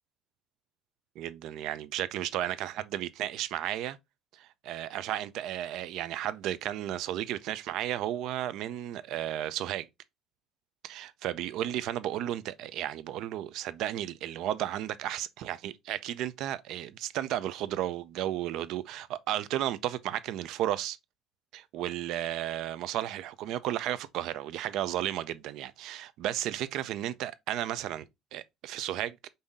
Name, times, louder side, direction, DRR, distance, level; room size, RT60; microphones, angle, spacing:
voice 1, 1.2-4.0 4.3-9.9 10.8-21.0 21.5-28.0 28.3-29.2, right 12 dB, 65° right, 0.4 m, -33 dB
5.5 x 2.6 x 3.5 m
cardioid pair, 170°, 0 cm